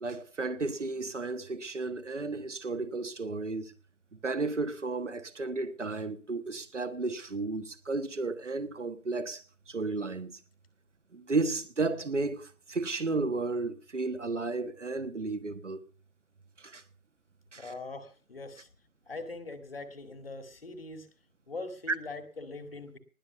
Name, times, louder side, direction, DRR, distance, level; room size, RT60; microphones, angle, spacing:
voice 1, 0.0-3.7 4.2-9.4 9.7-10.4 11.1-15.8 16.6-16.8 17.5-17.7, right 3 dB, 55° right, 1.4 m, -33 dB
voice 2, 17.6-18.7 19.1-21.1 21.5-23.0, left 3 dB, 40° left, 2.0 m, -42 dB
19.5 x 7.0 x 6.8 m
figure-of-eight pair, 170°, 42 cm